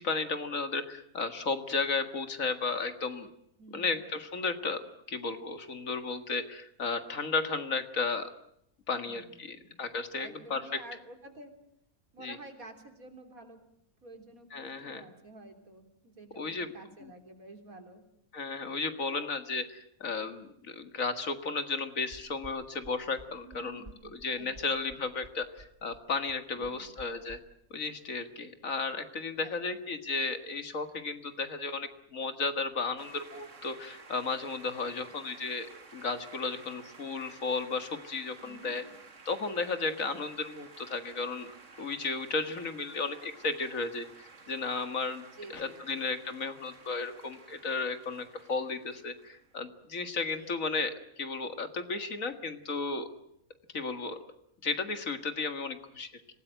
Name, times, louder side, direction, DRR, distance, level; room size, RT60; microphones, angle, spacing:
voice 1, 0.0-3.3 3.7-4.8 5.1-8.3 8.9-10.6 12.2-12.4 14.5-15.0 16.4-16.7 17.0-17.1 18.3-23.8 24.1-27.4 27.7-38.8 39.3-41.5 41.8-45.2 45.5-53.1 53.7-54.2 54.6-56.4, left 4 dB, 70° left, 8 dB, 2.3 m, -34 dB
voice 2, 3.6-4.0 9.0-9.8 10.2-11.5 12.1-13.6 14.0-18.0 23.4-24.8 26.6-27.0 29.4-30.0 38.4-39.0 45.3-46.1 50.4-50.6, right 2 dB, 80° right, 5 dB, 4.0 m, -51 dB
sound 1, 22.1-27.4, right 2 dB, 30° right, 2.8 m, -52 dB
sound 2, 33.0-49.6, right 4 dB, 60° right, 2.3 m, -53 dB
25.5 x 18.5 x 9.1 m, 0.77 s
omnidirectional pair, 1.5 m